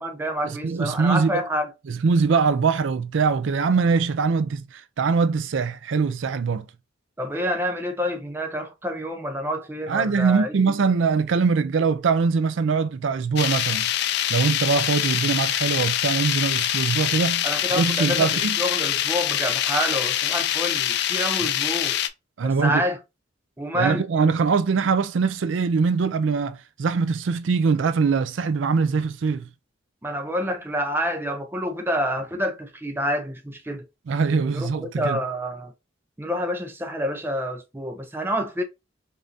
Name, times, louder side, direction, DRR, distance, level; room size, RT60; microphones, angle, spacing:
voice 1, 0.0-1.7 7.2-10.6 17.4-22.0 22.4-23.0 23.6-24.0 30.0-33.9 34.5-35.7 36.2-38.6, equal, 10° right, 0.6 m, -28 dB
voice 2, 0.6-1.4 1.9-6.6 9.9-13.9 14.3-17.5 17.7-18.6 22.4-22.8 23.7-29.5 34.1-35.2, right 5 dB, 75° right, 0.4 m, -22 dB
sound 1, 13.4-22.1, left 11 dB, 55° left, 0.4 m, -24 dB
5.2 x 2.6 x 2.6 m
head